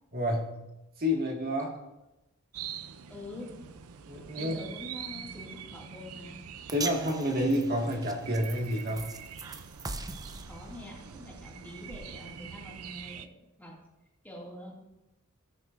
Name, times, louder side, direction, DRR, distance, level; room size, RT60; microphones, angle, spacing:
voice 1, 0.1-0.6 1.0-1.7 4.1-4.5 6.7-9.1, equal, 45° right, 0 dB, 1.8 m, -29 dB
sound 1, 2.5-13.3, right 8 dB, 80° right, 0.6 m, -45 dB
voice 2, 3.1-3.5 4.3-6.4 10.5-13.7 14.2-14.7, left 1 dB, 10° left, -4 dB, 2.3 m, -45 dB
sound 2, 6.7-13.1, right 3 dB, 15° right, 0.5 m, -43 dB
18.5 x 6.4 x 2.6 m, 0.96 s
head